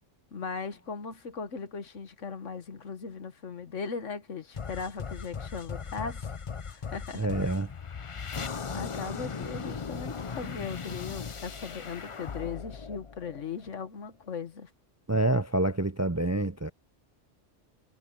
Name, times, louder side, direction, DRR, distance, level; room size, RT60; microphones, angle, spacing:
voice 1, 0.3-6.3 6.7-7.3 8.7-14.7, left 5 dB, 90° left, 1.7 m, -38 dB
sound 1, 4.6-13.9, left 5 dB, 35° left, 0.6 m, -38 dB
voice 2, 7.1-7.7 15.1-16.7, right 2 dB, 25° right, 0.3 m, -27 dB
omnidirectional pair, 1.2 m